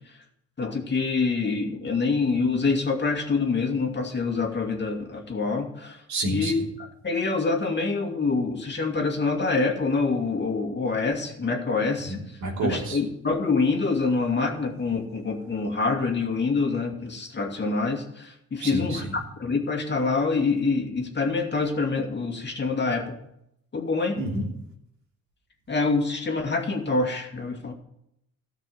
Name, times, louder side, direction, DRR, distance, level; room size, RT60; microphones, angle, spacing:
voice 1, 0.6-6.0 6.3-12.2 12.6-19.0 19.4-23.2 23.7-24.2 25.7-27.7, left 4 dB, 35° left, 3 dB, 2.4 m, -26 dB
voice 2, 6.1-6.5 12.1-13.0 18.6-19.0 24.1-24.5, right 2 dB, 70° right, -1 dB, 3.1 m, -29 dB
13.5 x 6.1 x 7.9 m, 0.79 s
cardioid pair, 90°, 30 cm